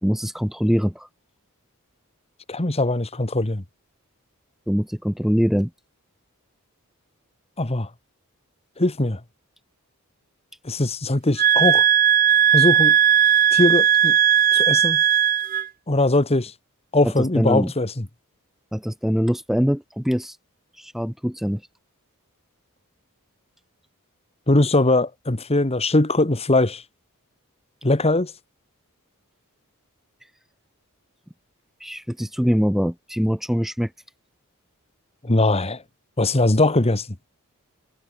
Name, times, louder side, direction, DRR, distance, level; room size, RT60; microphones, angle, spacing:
voice 1, 0.0-1.1 4.7-5.7 17.0-17.7 18.7-20.4 20.8-21.6 31.8-33.9, equal, ahead, 0.7 m, -23 dB
voice 2, 2.5-3.6 7.6-7.9 8.8-9.2 10.6-11.9 12.5-13.0 13.5-14.2 14.5-15.0 15.9-16.5 16.9-18.1 24.5-26.8 27.8-28.3 35.2-35.8 36.2-37.1, left 2 dB, 30° left, 1.5 m, -21 dB
sound 1, 11.4-15.7, right 10 dB, 40° right, 0.5 m, -17 dB
head